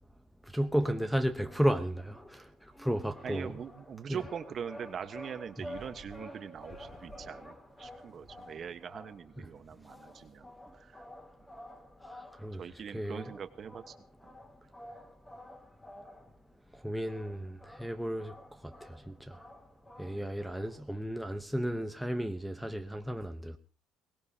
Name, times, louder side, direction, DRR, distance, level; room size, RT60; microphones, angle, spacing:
voice 1, 0.5-2.5 2.8-3.6 4.1-4.2 5.6-5.7 9.4-9.5 12.1-12.6 12.9-13.3 16.7-18.4 18.6-19.4 20.0-23.6, equal, ahead, 0.9 m, -33 dB
sound 1, 1.4-20.8, left 1 dB, 15° left, 2.7 m, -51 dB
voice 2, 3.2-10.5 10.7-11.0 12.6-13.9 14.2-14.3 20.0-20.3, right 7 dB, 40° right, 1.3 m, -42 dB
23.0 x 19.0 x 2.9 m
cardioid pair, 135°, 0 cm